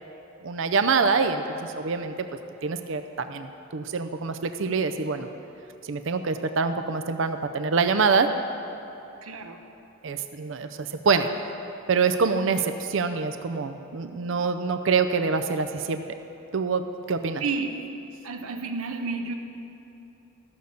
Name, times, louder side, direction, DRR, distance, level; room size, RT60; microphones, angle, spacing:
voice 1, 0.4-2.1 2.6-5.3 5.8-8.3 10.0-11.3 11.9-16.0 16.5-17.4, right 5 dB, 60° right, 8 dB, 0.5 m, -25 dB
voice 2, 9.2-9.6 17.4-17.7 18.2-19.3, right 4 dB, 85° right, 5 dB, 0.9 m, -30 dB
13.5 x 6.8 x 6.5 m, 3.0 s
head